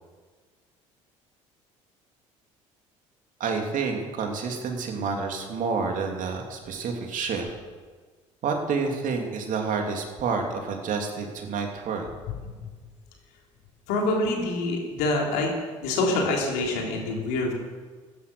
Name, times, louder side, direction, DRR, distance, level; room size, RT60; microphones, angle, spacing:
voice 1, 3.4-7.5 8.4-12.1, right 5 dB, 55° right, 3 dB, 2.8 m, -29 dB
voice 2, 13.9-15.5 15.8-17.5, left 2 dB, 70° left, 0 dB, 3.4 m, -26 dB
14.5 x 11.0 x 6.3 m, 1.4 s
hypercardioid pair, 60°, 16 cm